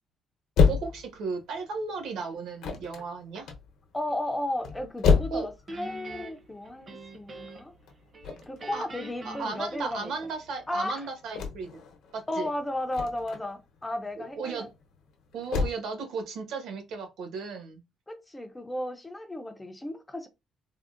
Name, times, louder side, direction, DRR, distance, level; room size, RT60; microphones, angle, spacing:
sound 1, 0.6-15.7, left 5 dB, 70° left, 0.7 m, -30 dB
voice 1, 0.7-3.5 5.3-5.5 8.7-8.9 9.2-11.8 12.3-12.5 14.2-14.7 15.3-17.8, right 4 dB, 70° right, 1.0 m, -35 dB
voice 2, 3.9-7.7 8.5-10.1 10.7-11.1 12.3-14.7 18.1-20.3, left 1 dB, 10° left, 0.3 m, -34 dB
Guitar, 5.7-7.8 8.1-10.4, right 1 dB, 30° right, 0.6 m, -44 dB
3.5 x 2.1 x 2.4 m
cardioid pair, 160°, 0 cm